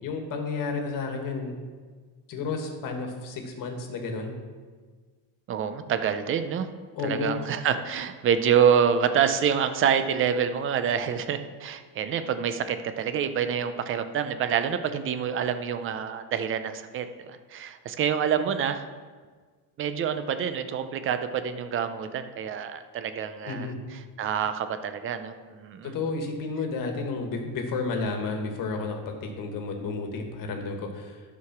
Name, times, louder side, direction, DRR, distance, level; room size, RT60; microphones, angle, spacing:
voice 1, 0.0-1.6 2.3-4.3 6.9-7.4 23.4-23.8 25.8-31.4, left 4 dB, 50° left, 3 dB, 1.5 m, -32 dB
voice 2, 5.5-6.7 7.0-18.9 19.8-23.7 24.2-25.9, right 8 dB, 30° right, 10 dB, 0.5 m, -27 dB
11.5 x 4.9 x 5.9 m, 1.5 s
cardioid pair, 175°, 41 cm